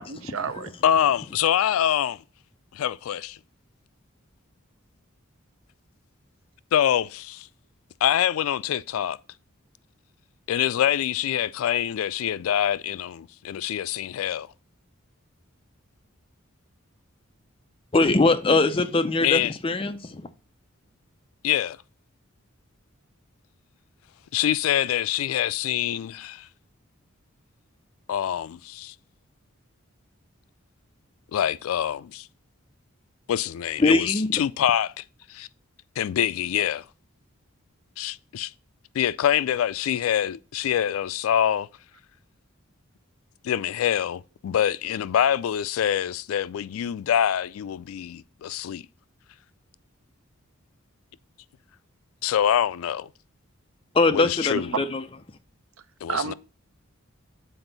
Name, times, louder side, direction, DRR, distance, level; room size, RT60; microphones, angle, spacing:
voice 1, 0.0-0.7 56.1-56.3, right 5 dB, 75° right, 0.6 m, -30 dB
voice 2, 0.8-2.2 2.7-3.4 6.7-7.5 8.0-9.2 10.5-14.5 19.2-19.5 21.4-21.8 24.3-26.5 28.1-28.9 31.3-32.3 33.3-35.0 35.3-35.5 36.0-36.9 38.0-38.5 38.9-41.7 43.4-48.8 52.2-53.1 54.1-54.7 56.0-56.3, left 10 dB, 85° left, 0.3 m, -25 dB
voice 3, 17.9-20.2 33.8-34.4 53.9-55.0, left 3 dB, 25° left, 0.5 m, -22 dB
7.9 x 4.4 x 3.9 m
head